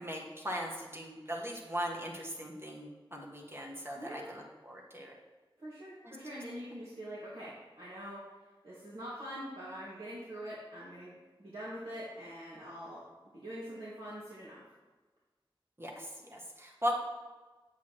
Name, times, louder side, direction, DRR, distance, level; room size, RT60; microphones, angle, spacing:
voice 1, 0.0-5.1 6.0-6.2 15.8-16.9, equal, 25° right, -1 dB, 1.5 m, -39 dB
voice 2, 3.9-4.3 5.6-8.2 8.6-13.0 13.3-14.6, equal, 65° right, -10 dB, 2.2 m, -44 dB
8.1 x 7.8 x 3.1 m, 1.3 s
wide cardioid pair, 50°, 9 cm